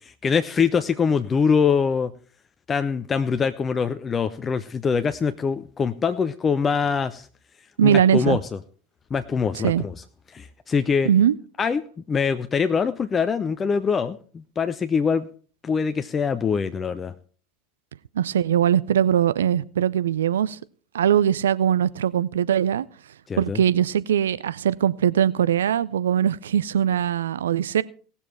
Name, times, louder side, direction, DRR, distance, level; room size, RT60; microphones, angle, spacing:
voice 1, 0.2-2.1 2.7-7.3 7.8-8.6 9.1-9.9 10.3-11.1 11.6-11.8 12.1-15.3 15.6-17.1 23.3-23.6, left 6 dB, 25° left, 0.6 m, -23 dB
voice 2, 7.8-8.4 9.6-9.8 11.0-11.4 18.2-20.6 20.9-22.9 23.4-27.8, right 9 dB, 70° right, 0.4 m, -21 dB
18.0 x 7.1 x 4.2 m
figure-of-eight pair, 75°, 0 cm